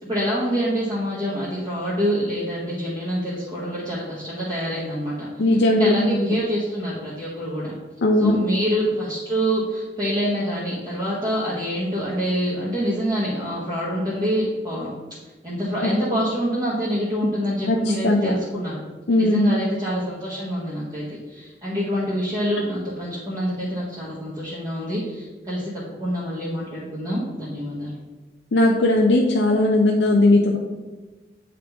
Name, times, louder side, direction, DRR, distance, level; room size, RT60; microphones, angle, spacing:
voice 1, 0.0-5.3 5.7-7.7 8.2-14.9 15.4-18.8 19.2-25.7 26.0-28.0, equal, 25° right, -8 dB, 1.2 m, -26 dB
voice 2, 5.4-6.1 8.0-8.4 16.0-16.1 17.7-17.8 18.0-18.4 19.1-19.5 28.5-30.6, left 2 dB, 70° left, 0 dB, 0.5 m, -18 dB
8.4 x 3.8 x 3.5 m, 1.2 s
head